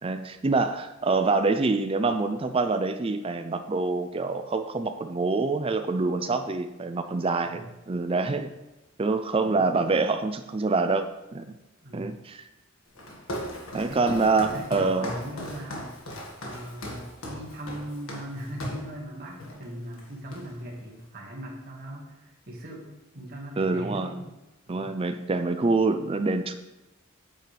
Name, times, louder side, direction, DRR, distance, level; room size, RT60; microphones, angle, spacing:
voice 1, 0.0-8.5 9.0-11.5 11.9-12.5 13.7-15.1 23.6-24.1 24.7-26.5, right 3 dB, 25° right, 8 dB, 0.4 m, -26 dB
Walk footsteps, 12.9-18.9 19.4-19.7 19.9-20.7, equal, 85° left, 1.7 m, -38 dB
voice 2, 13.8-16.0 16.4-24.3 24.7-24.9, equal, 45° right, -3 dB, 1.8 m, -39 dB
9.2 x 8.3 x 3.3 m, 1.0 s
head